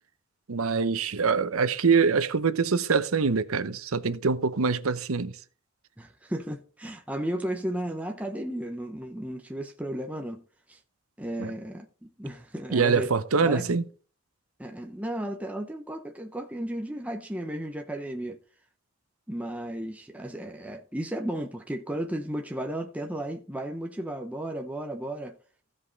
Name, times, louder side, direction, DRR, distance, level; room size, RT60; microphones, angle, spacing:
voice 1, 0.5-5.3 11.4-11.5 12.7-13.8, right 5 dB, 85° right, 0.8 m, -24 dB
voice 2, 6.0-10.4 10.7-10.8 11.2-13.1 13.4-13.8 14.6-18.4 19.3-25.4, right 1 dB, 5° right, 0.7 m, -34 dB
15.5 x 5.3 x 4.0 m
head